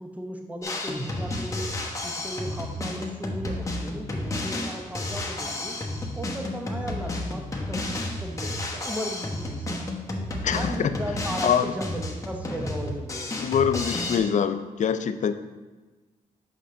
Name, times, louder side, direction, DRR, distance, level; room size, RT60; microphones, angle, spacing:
voice 1, 0.0-1.7 2.0-5.8 6.2-9.9 10.5-13.3, equal, 10° right, 2 dB, 0.9 m, -36 dB
Drum kit, 0.6-14.2, left 1 dB, 20° left, 1.0 m, -32 dB
voice 2, 10.4-10.7 11.4-11.7 13.4-15.3, left 8 dB, 55° left, 11 dB, 0.4 m, -24 dB
5.5 x 5.4 x 3.7 m, 1.3 s
cardioid pair, 75°, 15 cm